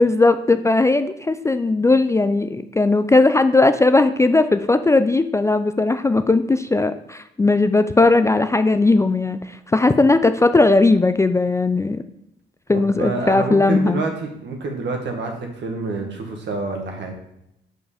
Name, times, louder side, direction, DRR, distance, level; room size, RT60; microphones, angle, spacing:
voice 1, 0.0-12.0 12.7-14.0, left 3 dB, 15° left, 10 dB, 0.3 m, -17 dB
voice 2, 12.7-17.1, right 3 dB, 65° right, 3 dB, 1.6 m, -27 dB
5.4 x 4.7 x 4.9 m, 0.80 s
cardioid pair, 90°, 20 cm